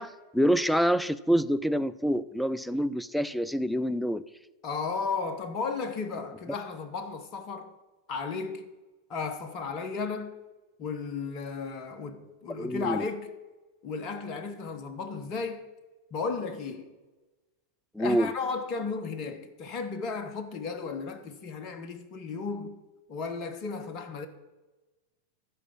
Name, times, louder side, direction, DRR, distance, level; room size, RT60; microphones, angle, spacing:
voice 1, 0.0-4.2 12.6-13.1 17.9-18.3, equal, ahead, 0.4 m, -26 dB
voice 2, 4.6-7.7 8.1-8.7 9.1-10.3 10.8-13.3 13.8-15.7 16.1-16.9 18.0-22.8 23.1-24.3, left 4 dB, 35° left, 0.9 m, -34 dB
14.5 x 5.1 x 7.3 m
figure-of-eight pair, 90°, 0 cm